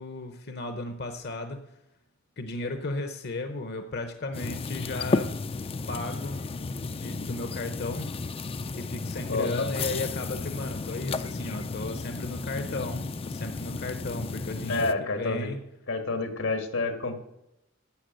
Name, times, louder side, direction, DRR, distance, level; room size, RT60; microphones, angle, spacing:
voice 1, 0.0-1.6 2.4-5.3 5.9-6.4 6.8-8.1 8.7-15.6, left 2 dB, 55° left, 7 dB, 0.8 m, -35 dB
sound 1, 4.3-14.9, left 3 dB, 30° left, 0.4 m, -33 dB
voice 2, 9.3-9.7 14.7-15.5 15.9-17.2, left 3 dB, 90° left, 6 dB, 2.0 m, -29 dB
11.5 x 7.3 x 7.7 m, 0.89 s
head